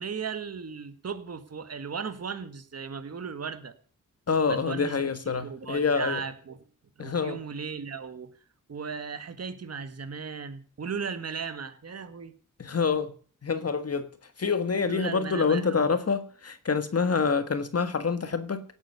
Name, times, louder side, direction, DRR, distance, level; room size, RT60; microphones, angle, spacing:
voice 1, 0.0-3.7 4.5-5.0 5.4-6.6 7.0-8.3 8.7-12.3 14.9-15.9, right 6 dB, 50° right, 1.7 m, -36 dB
voice 2, 4.3-6.2 7.0-7.4 12.6-13.1 13.4-14.1 14.4-18.6, left 5 dB, 50° left, 1.6 m, -26 dB
18.0 x 9.1 x 6.7 m
wide cardioid pair, 120°, 32 cm